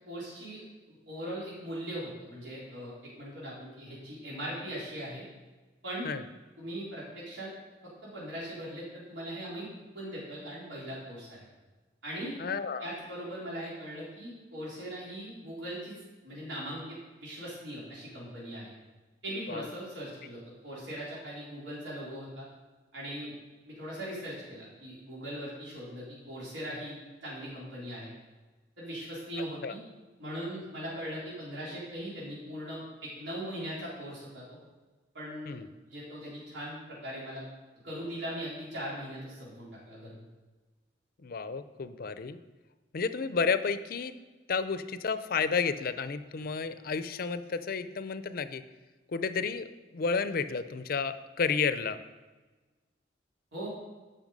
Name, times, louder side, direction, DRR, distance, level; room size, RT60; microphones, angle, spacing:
voice 1, 0.1-0.6 0.9-5.2 5.8-6.1 6.6-7.5 8.0-9.7 9.9-11.4 12.0-12.4 12.8-15.9 16.2-18.7 19.2-22.5 22.9-23.4 23.7-26.9 27.2-28.1 28.8-29.8 30.2-34.4 35.1-35.5 35.9-37.4 37.8-40.2 53.5-53.7, equal, 80° right, -8 dB, 3.6 m, -40 dB
voice 2, 12.4-12.9 19.5-19.7 29.6-29.7 35.5-35.7 41.2-42.4 42.9-44.1 44.5-48.6 49.1-52.0, left 5 dB, 55° left, 12 dB, 0.5 m, -31 dB
12.5 x 5.6 x 5.3 m, 1.2 s
head